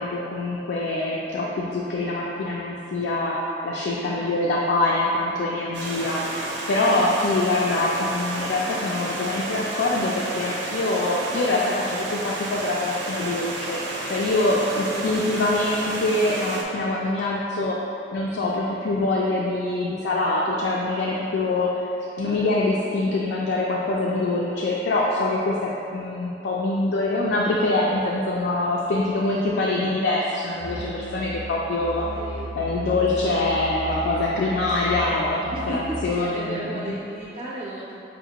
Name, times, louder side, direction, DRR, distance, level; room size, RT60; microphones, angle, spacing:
voice 1, 0.0-17.8 18.1-32.1 32.6-36.8, left 2 dB, 70° left, -4 dB, 0.3 m, -24 dB
voice 2, 4.1-4.4 6.9-7.3 14.4-15.8 22.2-22.8 32.1-32.6 35.5-38.0, right 1 dB, 35° right, -5 dB, 0.3 m, -36 dB
Stream, 5.7-16.6, right 2 dB, 90° right, 0.5 m, -32 dB
Musical instrument, 30.6-36.2, equal, 85° left, 0.7 m, -35 dB
5.5 x 2.1 x 2.8 m, 2.7 s
head